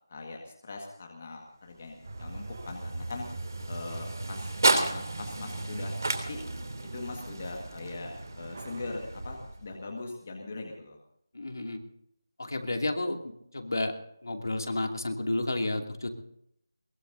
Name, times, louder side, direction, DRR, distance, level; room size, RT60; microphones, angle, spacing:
voice 1, 0.1-3.3 3.7-6.4 6.9-11.0, left 3 dB, 25° left, 1 dB, 1.8 m, -41 dB
sound 1, 1.6-9.9, right 2 dB, 55° right, 3.1 m, -34 dB
sound 2, 2.0-9.0, right 2 dB, 30° right, 1.2 m, -40 dB
voice 2, 11.3-11.8 12.4-13.9 14.2-16.1, left 2 dB, 60° left, 3 dB, 2.7 m, -31 dB
22.5 x 21.5 x 2.8 m, 0.73 s
figure-of-eight pair, 180°, 2 cm